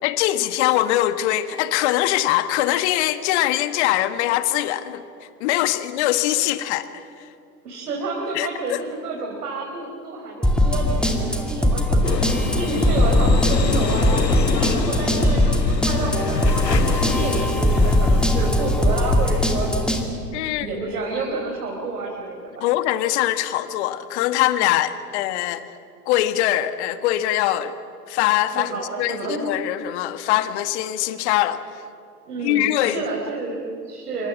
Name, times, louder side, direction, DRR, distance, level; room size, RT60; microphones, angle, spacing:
voice 1, 0.0-5.0 5.4-6.9 8.3-8.8 20.3-20.7 22.6-25.6 26.1-27.7 28.1-28.7 29.0-31.6 32.4-33.0, left 14 dB, 40° left, 12 dB, 1.6 m, -22 dB
voice 2, 7.6-19.7 20.5-22.7 28.5-29.5 32.3-34.3, right 3 dB, 65° right, -1 dB, 4.6 m, -30 dB
sound 1, 10.4-20.0, left 1 dB, ahead, 2.5 m, -20 dB
sound 2, 12.0-20.0, left 6 dB, 80° left, 1.5 m, -27 dB
27.5 x 25.0 x 7.4 m, 2.7 s
figure-of-eight pair, 100°, 49 cm